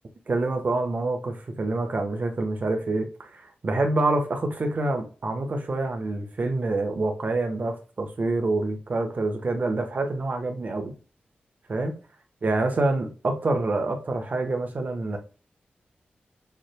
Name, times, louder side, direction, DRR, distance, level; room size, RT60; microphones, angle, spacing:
voice 1, 0.3-10.9 11.7-11.9 12.4-15.2, right 2 dB, 55° right, 1.2 m, -26 dB
7.2 x 3.3 x 2.2 m
cardioid pair, 60°, 4 cm